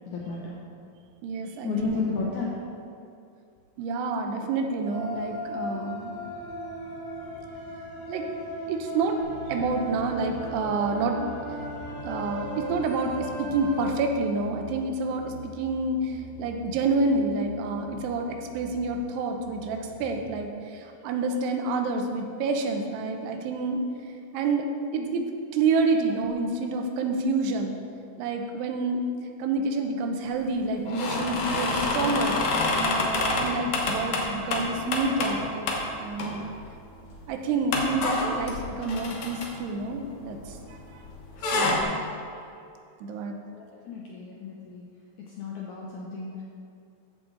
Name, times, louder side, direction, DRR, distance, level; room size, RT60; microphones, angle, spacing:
voice 1, 0.1-0.6 1.6-2.5 43.5-44.9 45.2-46.4, left 5 dB, 80° left, -3 dB, 1.8 m, -32 dB
voice 2, 1.2-2.0 3.8-6.2 8.1-8.3 8.7-11.2 12.0-23.8 24.3-24.7 24.9-25.3 25.5-27.8 28.2-29.0 29.4-35.7 36.0-36.5 37.3-40.6 40.9-41.0 41.5-42.0 42.3-42.5 43.0-43.4, right 3 dB, 85° right, 4 dB, 2.9 m, -28 dB
sound 1, 4.8-13.9, equal, 50° right, 3.6 m, -37 dB
sound 2, 9.2-20.5, left 2 dB, ahead, 0.7 m, -45 dB
sound 3, 30.9-35.4 35.7-35.8 36.2-36.7 37.0-37.1 37.7-40.8 41.1-41.8, left 2 dB, 60° left, 2.1 m, -27 dB
14.5 x 6.2 x 3.9 m, 2.5 s
omnidirectional pair, 4.7 m